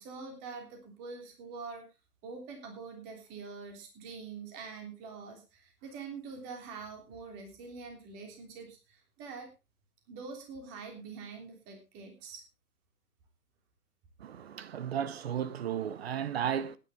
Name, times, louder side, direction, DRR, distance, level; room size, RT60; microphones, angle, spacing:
voice 1, 0.0-1.8 2.2-9.5 10.1-12.4, right 4 dB, 20° right, 3.3 m, -45 dB
voice 2, 14.2-16.8, right 9 dB, 40° right, 1.0 m, -34 dB
17.0 x 10.0 x 3.6 m
figure-of-eight pair, 140°, 46 cm